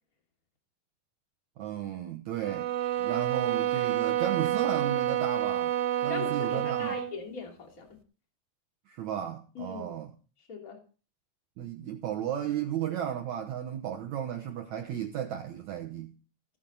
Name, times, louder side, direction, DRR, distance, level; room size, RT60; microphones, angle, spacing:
voice 1, 1.6-2.7 3.0-5.7 6.0-6.9 8.9-10.1 11.6-16.1, right 10 dB, 70° right, 1.8 m, -34 dB
sound 1, 2.4-7.2, right 12 dB, 90° right, 3.2 m, -29 dB
voice 2, 6.1-7.9 9.5-9.9 10.5-10.8, left 5 dB, 25° left, 2.7 m, -40 dB
16.0 x 8.8 x 4.0 m
omnidirectional pair, 4.5 m